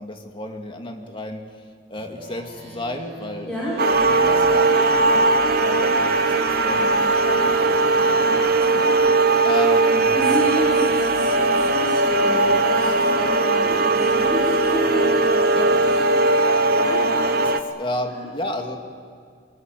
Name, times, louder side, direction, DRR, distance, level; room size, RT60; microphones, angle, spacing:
voice 1, 0.0-1.6 1.9-3.5 4.0-5.3 5.6-10.1 15.5-15.8 17.4-18.8, left 1 dB, 30° left, 3 dB, 2.4 m, -33 dB
Speech synthesizer, 2.0-5.0, right 1 dB, 40° right, 6.0 m, -40 dB
voice 2, 3.4-3.7 10.1-15.6 15.8-15.9 16.7-17.0 18.1-18.3, left 1 dB, 5° left, -8 dB, 6.0 m, -29 dB
sound 1, 3.8-17.6, right 3 dB, 55° right, 1.3 m, -19 dB
sound 2, 3.9-15.6, left 3 dB, 85° left, 3.9 m, -40 dB
24.0 x 21.5 x 9.4 m, 2.2 s
head